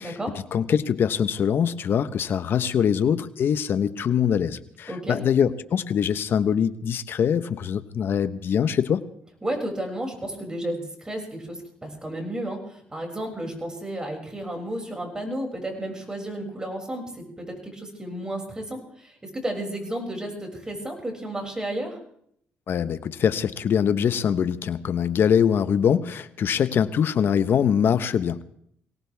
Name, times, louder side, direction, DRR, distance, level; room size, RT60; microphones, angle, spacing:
voice 1, 0.0-0.3 4.9-5.2 9.4-17.1 17.4-22.0, right 1 dB, 15° right, 2 dB, 6.4 m, -32 dB
voice 2, 0.5-9.0 22.7-28.4, left 8 dB, 60° left, 12 dB, 1.0 m, -23 dB
23.0 x 17.5 x 3.5 m, 0.68 s
cardioid pair, 80°, 4 cm